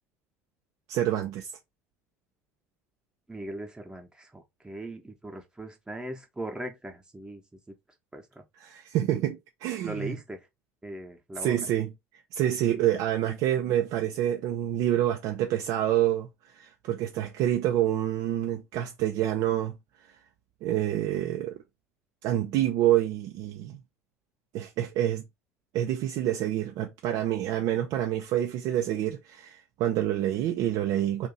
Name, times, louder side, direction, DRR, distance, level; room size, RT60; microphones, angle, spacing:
voice 1, 0.9-1.5 8.6-10.1 11.4-11.9 12.3-16.3 16.5-19.7 20.6-21.6 22.2-23.8 24.5-25.2 25.7-31.3, right 12 dB, 50° right, 0.5 m, -27 dB
voice 2, 3.3-7.7 8.1-8.4 9.8-10.5 10.8-11.7, right 1 dB, 10° right, 1.0 m, -39 dB
2.8 x 2.6 x 3.9 m
figure-of-eight pair, 65°, 8 cm